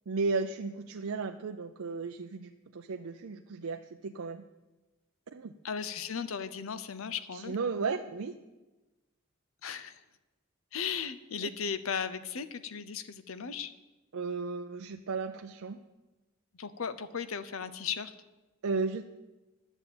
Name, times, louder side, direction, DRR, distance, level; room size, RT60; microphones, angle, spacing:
voice 1, 0.1-4.4 5.3-5.5 7.3-8.3 14.1-15.8 18.6-19.0, right 4 dB, 80° right, 5 dB, 0.5 m, -34 dB
voice 2, 5.6-7.6 9.6-9.9 10.7-13.7 16.6-18.1, left 6 dB, 75° left, 13 dB, 0.7 m, -36 dB
11.0 x 7.1 x 8.6 m, 1.1 s
head